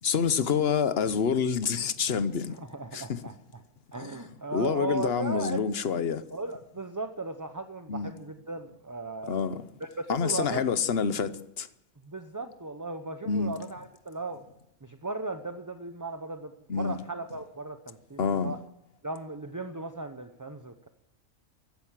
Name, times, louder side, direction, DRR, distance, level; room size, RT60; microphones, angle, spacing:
voice 1, 0.0-2.6 2.9-3.2 4.0-6.2 7.9-8.1 9.3-9.7 10.1-11.7 13.2-13.5 16.7-17.0 18.2-18.6, left 6 dB, 50° left, 1.1 m, -27 dB
voice 2, 2.5-3.6 3.9-5.6 6.3-9.4 9.8-10.6 12.0-14.4 14.8-18.6 19.0-20.9, right 3 dB, 20° right, 0.6 m, -37 dB
15.5 x 12.0 x 7.5 m
omnidirectional pair, 1.4 m